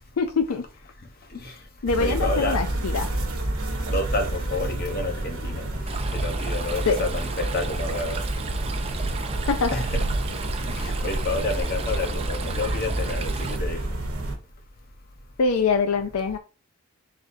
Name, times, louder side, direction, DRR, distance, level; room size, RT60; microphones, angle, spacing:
voice 1, 0.2-0.6 1.8-3.1 6.9-7.0 9.5-9.8 15.4-16.4, left 4 dB, 80° left, 0.5 m, -24 dB
voice 2, 1.2-1.7 2.0-2.6 3.9-8.3 9.7-10.0 10.6-14.0, left 2 dB, 45° left, 0.9 m, -30 dB
sound 1, 1.9-14.3, right 1 dB, 85° right, 1.1 m, -29 dB
Stream, 5.9-13.6, right 4 dB, 30° right, 0.4 m, -34 dB
4.2 x 4.0 x 2.6 m
head